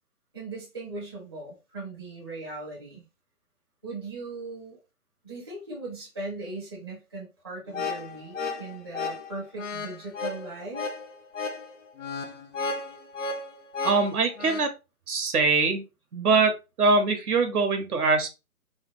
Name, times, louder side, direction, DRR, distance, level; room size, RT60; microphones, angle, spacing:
voice 1, 0.3-3.0 3.8-4.8 5.2-10.9, right 2 dB, 15° right, -5 dB, 0.6 m, -38 dB
sound 1, 7.7-14.7, left 3 dB, 55° left, 0.6 m, -34 dB
voice 2, 13.8-14.7 15.1-15.8 16.1-18.3, right 4 dB, 75° right, 6 dB, 0.9 m, -23 dB
3.2 x 2.2 x 2.9 m, 0.27 s
hypercardioid pair, 155°, 45 cm